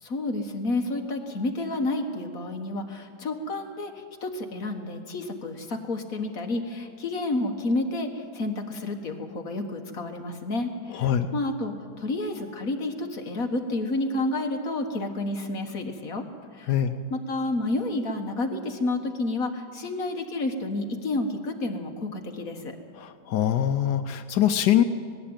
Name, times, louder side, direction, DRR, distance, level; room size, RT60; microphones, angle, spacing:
voice 1, 0.0-16.2 16.5-16.8 17.1-22.8, left 2 dB, 55° left, 4 dB, 2.0 m, -30 dB
voice 2, 10.9-11.3 16.7-16.9 23.0-24.8, left 10 dB, 80° left, 9 dB, 1.3 m, -23 dB
19.0 x 15.5 x 8.9 m, 2.1 s
omnidirectional pair, 1.8 m